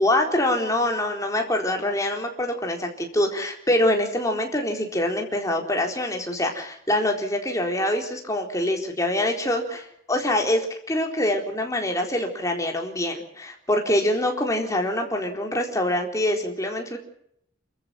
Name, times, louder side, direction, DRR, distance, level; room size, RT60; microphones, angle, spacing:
voice 1, 0.0-17.0, left 1 dB, 15° left, 2 dB, 4.1 m, -25 dB
29.5 x 14.5 x 7.7 m, 0.71 s
head